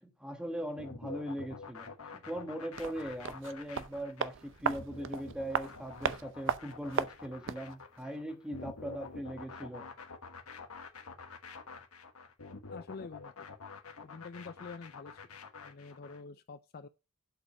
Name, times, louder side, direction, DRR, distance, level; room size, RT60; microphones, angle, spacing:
voice 1, 0.0-9.8, equal, 5° right, 1.5 m, -40 dB
sound 1, 0.8-16.2, left 4 dB, 70° left, 1.4 m, -48 dB
sound 2, 2.7-7.7 8.0-8.1, right 6 dB, 60° right, 0.6 m, -36 dB
voice 2, 12.7-13.5 14.0-15.2 15.6-16.9, left 4 dB, 45° left, 0.5 m, -47 dB
7.7 x 5.2 x 7.0 m
head